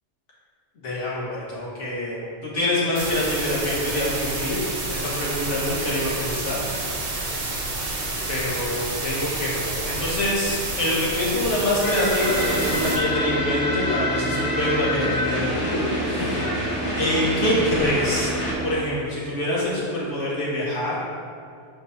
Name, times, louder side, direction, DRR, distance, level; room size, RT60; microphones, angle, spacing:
voice 1, 0.8-4.6 4.9-6.6 8.3-16.4 17.0-18.3 18.6-20.9, left 1 dB, 90° left, -7 dB, 1.8 m, -25 dB
sound 1, 3.0-13.0, right 2 dB, 55° right, 1.1 m, -29 dB
sound 2, 11.8-18.5, left 1 dB, 30° left, 1.1 m, -28 dB
Car / Idling, 12.2-18.8, right 1 dB, 15° right, 0.4 m, -30 dB
7.8 x 4.6 x 2.6 m, 2.3 s
omnidirectional pair, 1.2 m